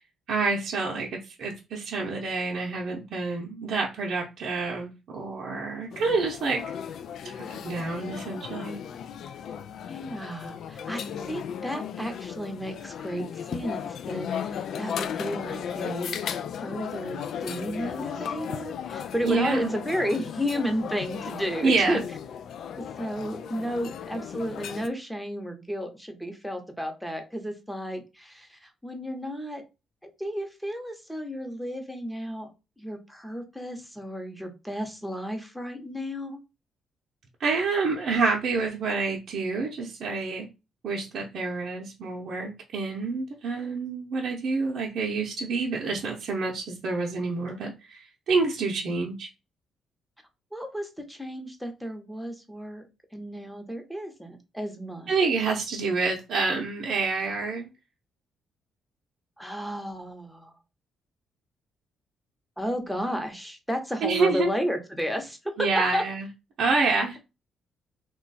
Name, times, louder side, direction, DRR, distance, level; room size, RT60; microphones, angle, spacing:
voice 1, 0.3-6.6 7.2-8.8 19.2-19.7 21.6-22.0 37.4-40.5 40.8-49.3 55.1-57.7 64.0-64.5 65.6-66.3 66.6-67.2, right 4 dB, 65° right, 0.7 m, -27 dB
sound 1, 5.9-24.9, left 8 dB, 70° left, 0.3 m, -36 dB
voice 2, 9.9-11.0 11.3-16.2 16.6-22.0 22.8-29.6 30.2-32.5 32.8-36.4 50.5-52.8 53.1-55.1 59.4-60.5 62.6-65.7 65.9-66.0, equal, ahead, 0.9 m, -32 dB
3.0 x 2.2 x 4.0 m
cardioid pair, 90°, 0 cm